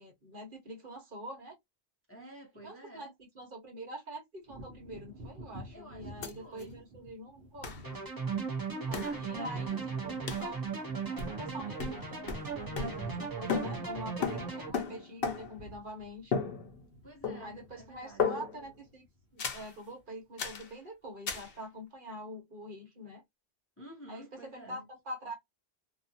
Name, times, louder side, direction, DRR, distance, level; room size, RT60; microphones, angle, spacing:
voice 1, 0.0-1.6 2.6-3.1 3.3-8.0 8.9-10.6 11.2-16.3 17.4-19.0 19.3-23.2 24.1-25.3, equal, 55° right, 1.3 m, -45 dB
voice 2, 2.1-3.1 5.7-6.8 8.3-8.5 8.8-9.9 17.0-18.2 23.8-24.9, right 1 dB, 15° left, 0.6 m, -51 dB
Wind / Thunder, 4.4-12.0 12.3-19.5 20.0-20.1, equal, 70° right, 1.1 m, -53 dB
sound 1, 6.2-6.3 6.6-6.7 7.6-7.8 8.9-9.2 10.3-10.5 11.2-11.5 11.8-13.2 13.5-15.7 16.3-17.0 17.2-17.7 18.2-18.7 19.4-19.7 20.4-20.7 21.3-21.5, left 5 dB, 65° left, 0.9 m, -35 dB
sound 2, 7.8-14.7, right 5 dB, 20° right, 0.8 m, -37 dB
2.6 x 2.4 x 2.6 m
omnidirectional pair, 1.1 m